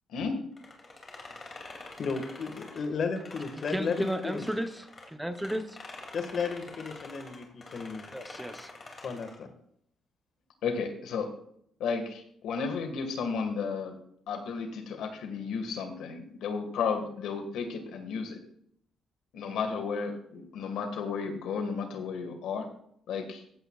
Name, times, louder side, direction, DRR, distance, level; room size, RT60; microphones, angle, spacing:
sound 1, 0.6-5.1 5.3-9.4, left 3 dB, 35° left, 2.5 m, -46 dB
voice 1, 2.0-4.4 6.1-8.0 9.0-9.5, left 5 dB, 55° left, 7 dB, 1.6 m, -34 dB
voice 2, 3.7-4.9 5.2-5.6 8.1-8.7, equal, 5° right, 8 dB, 0.8 m, -33 dB
voice 3, 10.6-11.3 11.8-14.0 14.3-18.4 19.3-22.7 23.1-23.4, left 5 dB, 80° left, 6 dB, 1.6 m, -33 dB
15.0 x 8.3 x 2.3 m, 0.69 s
cardioid pair, 90°, 0 cm